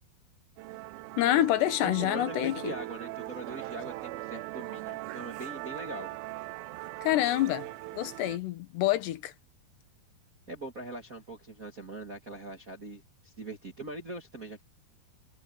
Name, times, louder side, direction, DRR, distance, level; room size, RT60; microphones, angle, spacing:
Musical instrument, 0.6-8.4, right 19 dB, 85° right, 2.1 m, -40 dB
voice 1, 1.2-2.8 7.0-7.7 7.9-9.3, left 14 dB, 90° left, 3.5 m, -27 dB
voice 2, 1.8-6.1 10.5-14.6, right 2 dB, 40° right, 1.1 m, -41 dB
omnidirectional pair, 4.8 m